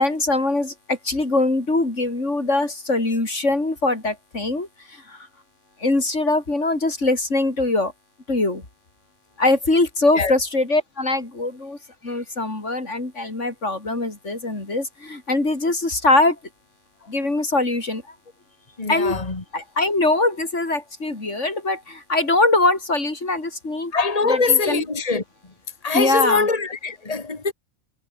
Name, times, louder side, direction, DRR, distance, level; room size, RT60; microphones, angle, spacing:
voice 1, 0.0-5.3 5.8-7.9 8.3-8.6 9.4-11.8 12.0-16.4 17.1-18.0 18.9-19.2 19.5-23.9 24.2-24.8 25.9-26.5, left 2 dB, 90° left, 5.0 m, -22 dB
voice 2, 18.8-19.4 23.9-25.2 25.8-27.5, left 4 dB, 30° left, 2.2 m, -22 dB
omnidirectional pair, 1.2 m